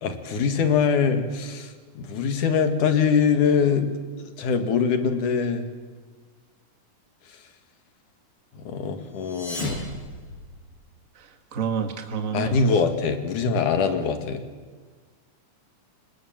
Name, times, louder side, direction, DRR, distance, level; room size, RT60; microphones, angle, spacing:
voice 1, 0.0-5.7 8.5-9.8 12.3-14.4, left 6 dB, 80° left, 7 dB, 3.4 m, -23 dB
sound 1, 9.1-11.0, left 2 dB, 45° left, 6.0 m, -35 dB
voice 2, 11.1-12.8, right 6 dB, 30° right, 5 dB, 2.1 m, -30 dB
27.0 x 26.0 x 7.5 m, 1.4 s
omnidirectional pair, 3.6 m